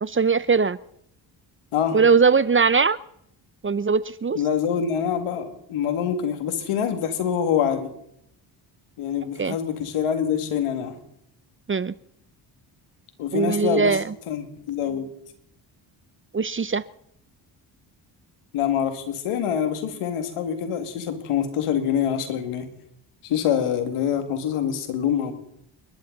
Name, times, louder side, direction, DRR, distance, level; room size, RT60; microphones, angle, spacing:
voice 1, 0.0-0.8 1.9-3.0 3.6-4.4 9.4-9.6 11.7-11.9 13.3-14.1 16.3-16.8, right 5 dB, 25° right, 18 dB, 0.6 m, -20 dB
voice 2, 4.3-7.9 9.0-10.9 13.2-14.0 14.3-15.1 18.5-22.7 23.2-25.3, left 8 dB, 85° left, 7 dB, 2.3 m, -25 dB
29.0 x 12.0 x 4.0 m, 0.75 s
supercardioid pair, 55°, 50 cm